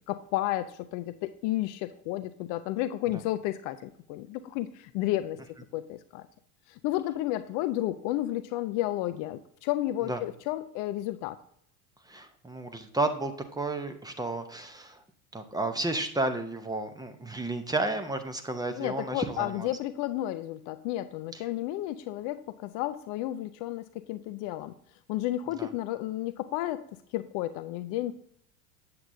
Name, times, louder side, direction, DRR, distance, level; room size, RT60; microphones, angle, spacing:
voice 1, 0.1-5.4 5.7-6.3 6.7-11.4 18.7-24.7 25.1-26.9 27.1-28.1, left 15 dB, 45° left, 11 dB, 0.5 m, -32 dB
voice 2, 12.0-15.0 15.3-19.7 25.6-25.7, right 2 dB, 10° right, 7 dB, 0.7 m, -32 dB
8.2 x 7.7 x 2.6 m, 0.66 s
hypercardioid pair, 80°, 46 cm